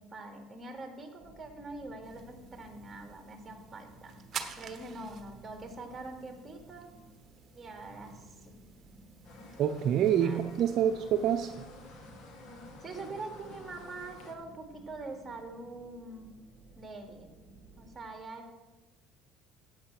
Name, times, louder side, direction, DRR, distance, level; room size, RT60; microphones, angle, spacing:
voice 1, 0.0-4.1 4.6-6.9 7.5-8.5 10.2-10.4 12.8-16.3 16.7-17.3 17.8-18.5, right 2 dB, 20° right, 3 dB, 3.1 m, -44 dB
sound 1, 1.2-18.0, right 2 dB, 5° left, 3.8 m, -56 dB
sound 2, 2.0-11.5, right 6 dB, 40° right, 1.4 m, -49 dB
sound 3, 9.2-14.3, left 3 dB, 60° left, 2.4 m, -51 dB
voice 2, 9.6-11.6, right 9 dB, 55° right, 6 dB, 0.8 m, -27 dB
13.5 x 8.9 x 6.0 m, 1.1 s
supercardioid pair, 105°, 0 cm